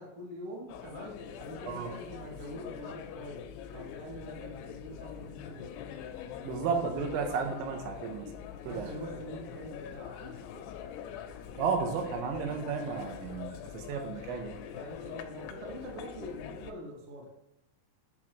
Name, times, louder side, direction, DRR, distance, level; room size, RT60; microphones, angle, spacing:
voice 1, 0.0-3.4 3.7-5.7 8.6-10.5 14.7-17.3, equal, 60° right, -2 dB, 1.4 m, -44 dB
sound 1, 0.7-16.7, left 8 dB, 85° left, 2.5 m, -44 dB
voice 2, 6.4-8.3 8.7-8.9 11.6-14.6, right 5 dB, 80° right, 4 dB, 3.2 m, -33 dB
10.5 x 6.4 x 3.0 m, 0.86 s
omnidirectional pair, 5.4 m